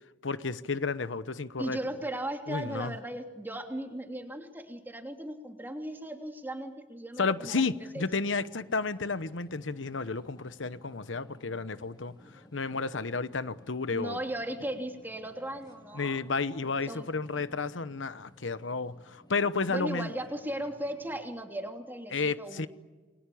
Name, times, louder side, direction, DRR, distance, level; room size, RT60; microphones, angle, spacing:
voice 1, 0.2-1.8 2.5-2.9 7.2-12.1 12.5-14.2 15.9-20.1 22.1-22.7, left 4 dB, 85° left, 1.0 m, -32 dB
voice 2, 1.6-8.0 13.9-16.2 16.9-17.1 19.7-22.7, right 1 dB, 10° right, 3.0 m, -37 dB
sound 1, 7.9-21.2, left 1 dB, 25° left, 3.1 m, -57 dB
29.0 x 22.0 x 8.6 m
head